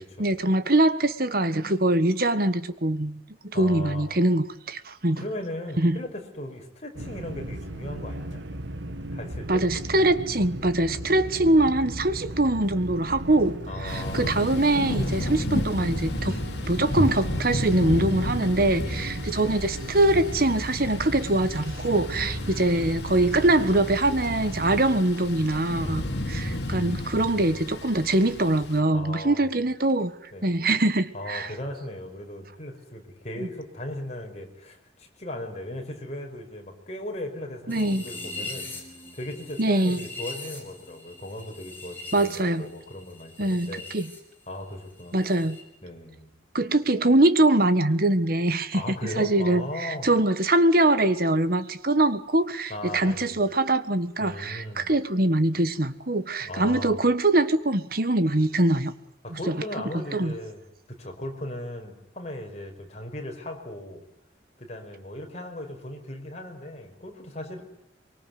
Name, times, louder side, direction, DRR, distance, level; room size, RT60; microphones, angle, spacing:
voice 1, 0.2-3.2 3.4-5.2 5.8-6.0 9.5-16.4 16.7-26.0 26.3-30.1 30.4-31.5 37.7-38.0 39.6-40.0 42.1-42.7 43.4-44.1 45.1-45.6 46.5-48.8 49.2-58.9 59.3-59.5 60.1-60.3, right 2 dB, 50° right, 1.6 m, -23 dB
voice 2, 3.5-4.1 5.2-8.5 9.1-9.6 13.7-14.4 15.1-15.3 18.8-19.4 22.1-22.7 25.8-26.9 28.9-29.4 30.3-30.5 31.1-38.7 39.1-43.8 44.5-45.1 45.8-46.3 48.7-50.1 52.7-53.4 54.2-54.9 56.4-57.0 59.2-60.6 60.9-64.0 64.6-67.6, left 1 dB, 35° left, 5.4 m, -37 dB
sound 1, 6.9-25.0, right 1 dB, 75° right, 2.0 m, -36 dB
Thunder / Rain, 13.9-28.8, left 1 dB, 60° left, 2.9 m, -32 dB
sound 2, 37.7-44.2 44.5-45.6, left 3 dB, 10° left, 5.9 m, -41 dB
24.5 x 24.0 x 9.6 m
head